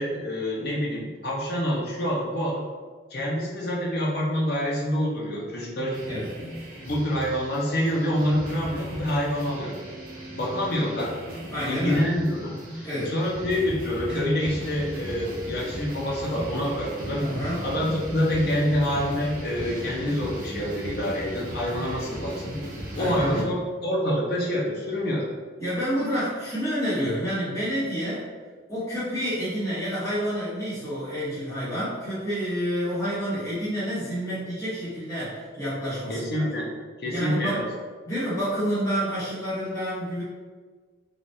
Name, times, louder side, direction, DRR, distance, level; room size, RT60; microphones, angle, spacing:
voice 1, 0.0-2.6 3.1-6.2 6.8-9.8 10.3-11.1 11.7-17.3 17.6-22.6 22.9-25.3 36.1-36.7 37.0-37.6, equal, 55° left, -3 dB, 0.6 m, -27 dB
sound 1, 5.9-23.4, equal, 45° right, 0.6 m, -37 dB
voice 2, 11.5-12.0 12.8-13.1 17.2-17.6 23.0-23.5 25.6-28.2 28.7-36.5 37.1-37.6 38.0-40.2, equal, 15° left, -13 dB, 1.1 m, -29 dB
3.3 x 2.4 x 2.7 m, 1.5 s
head